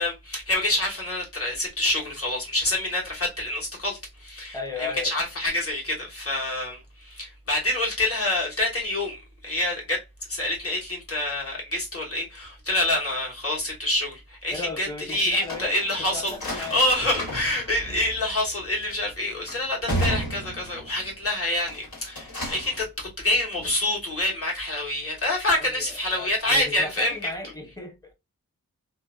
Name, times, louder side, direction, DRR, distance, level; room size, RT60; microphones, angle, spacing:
voice 1, 0.0-10.0 10.3-27.3, left 1 dB, 40° left, 1.3 m, -27 dB
voice 2, 4.5-5.1 14.5-16.8 25.5-28.1, left 3 dB, 10° left, 0.7 m, -36 dB
sound 1, 15.1-21.1 21.6-22.8, equal, 80° left, 1.4 m, -33 dB
2.7 x 2.1 x 2.2 m
wide cardioid pair, 95°, 35 cm